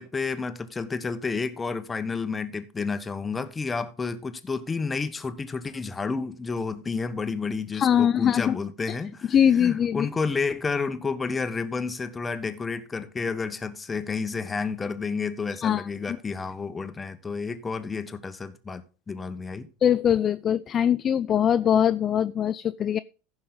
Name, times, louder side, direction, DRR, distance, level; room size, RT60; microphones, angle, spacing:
voice 1, 0.0-19.7, left 4 dB, 20° left, 1.2 m, -30 dB
voice 2, 7.7-8.5 9.3-10.1 15.6-15.9 19.8-23.0, left 9 dB, 35° left, 0.4 m, -22 dB
15.5 x 5.6 x 3.8 m
hypercardioid pair, 85°, 0 cm